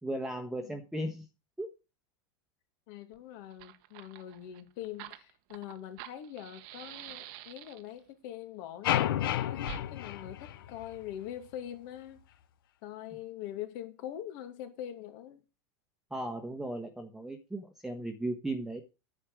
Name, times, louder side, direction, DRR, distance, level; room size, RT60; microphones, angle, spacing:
voice 1, 0.0-1.3 1.6-1.7 16.1-18.8, right 1 dB, 5° right, 1.3 m, -36 dB
voice 2, 2.9-12.2 12.8-15.4, left 11 dB, 60° left, 2.4 m, -43 dB
Fire, 3.1-3.2 3.4-8.0 9.6-9.8, right 14 dB, 60° right, 1.1 m, -47 dB
sound 1, 8.8-11.1, left 12 dB, 75° left, 1.0 m, -31 dB
10.0 x 7.7 x 6.2 m
supercardioid pair, 125°, 12 cm